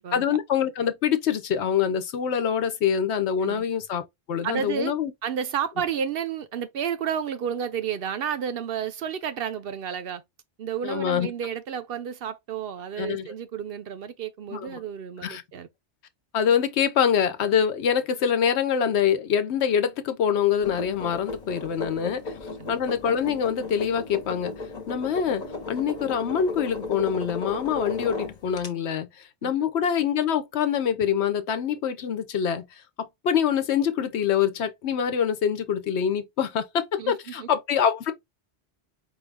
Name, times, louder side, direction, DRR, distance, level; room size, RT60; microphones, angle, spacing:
voice 1, 0.1-4.0 4.3-5.1 10.8-11.3 13.0-13.3 14.5-14.8 15.2-15.4 16.3-22.3 22.7-24.5 24.9-29.1 29.4-32.7 33.0-38.1, left 8 dB, 75° left, 0.9 m, -25 dB
voice 2, 4.4-4.9 5.2-10.2 10.6-15.7 22.6-22.8 29.4-29.5 37.0-37.5, right 8 dB, 65° right, 0.7 m, -31 dB
sound 1, 20.6-28.7, left 3 dB, 40° left, 0.9 m, -35 dB
4.6 x 2.4 x 3.3 m
omnidirectional pair, 1.2 m